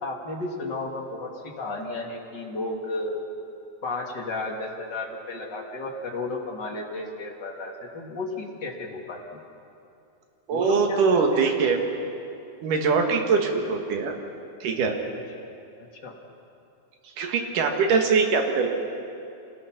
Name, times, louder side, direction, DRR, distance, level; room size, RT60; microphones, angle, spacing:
voice 1, 0.0-3.2 3.8-9.4 10.5-11.2 16.0-16.1, left 2 dB, 40° left, -1 dB, 1.6 m, -33 dB
voice 2, 10.5-11.8 12.6-14.1 14.6-15.0 17.2-18.7, right 5 dB, 60° right, 3 dB, 2.9 m, -22 dB
27.0 x 19.5 x 6.0 m, 2.7 s
omnidirectional pair, 4.8 m